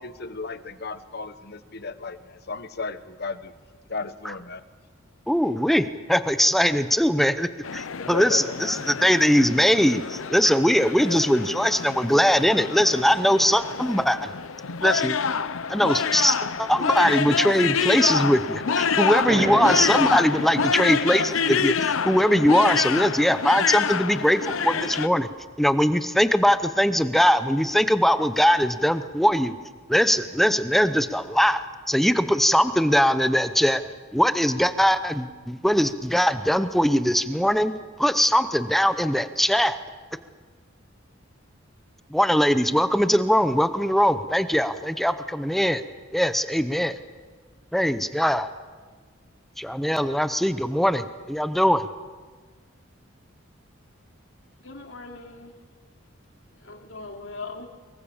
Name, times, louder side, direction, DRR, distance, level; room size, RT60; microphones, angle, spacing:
voice 1, 0.0-3.5 3.9-4.6 8.0-8.6 11.0-11.2, left 4 dB, 55° left, 12 dB, 1.2 m, -34 dB
voice 2, 5.3-14.3 14.8-15.2 15.7-25.3 25.6-29.5 29.9-33.8 34.1-37.7 38.0-39.8 42.1-45.8 46.1-47.0 47.7-48.5 49.6-51.9, equal, ahead, 11 dB, 0.7 m, -21 dB
sound 1, 7.6-25.1, left 6 dB, 85° left, 0.8 m, -27 dB
sound 2, 19.2-24.5, right 2 dB, 65° right, 6.7 m, -35 dB
voice 3, 54.6-55.6 56.5-57.7, left 3 dB, 70° left, 3 dB, 2.9 m, -40 dB
24.0 x 22.5 x 7.2 m, 1.5 s
head